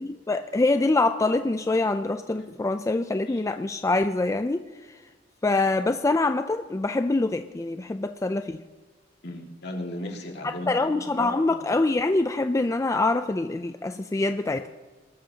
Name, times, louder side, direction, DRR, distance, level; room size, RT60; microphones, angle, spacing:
voice 1, 0.0-4.6 5.4-8.6 10.4-14.7, left 2 dB, 15° left, 9 dB, 0.3 m, -25 dB
voice 2, 9.2-10.8 11.2-11.6, left 1 dB, 60° left, 1 dB, 2.0 m, -36 dB
21.0 x 12.5 x 2.8 m, 1.4 s
head